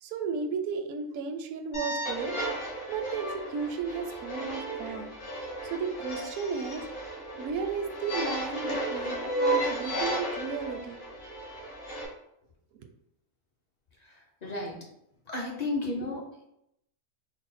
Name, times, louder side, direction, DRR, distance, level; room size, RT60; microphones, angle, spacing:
voice 1, 0.0-5.1 5.6-11.0 12.7-12.9, right 5 dB, 70° right, 5 dB, 0.9 m, -34 dB
sound 1, 1.7-12.0, right 1 dB, 60° left, 1.4 m, -34 dB
voice 2, 14.0-14.8 15.3-16.2, left 2 dB, 45° left, -1 dB, 0.5 m, -33 dB
4.0 x 2.1 x 4.1 m, 0.79 s
omnidirectional pair, 1.5 m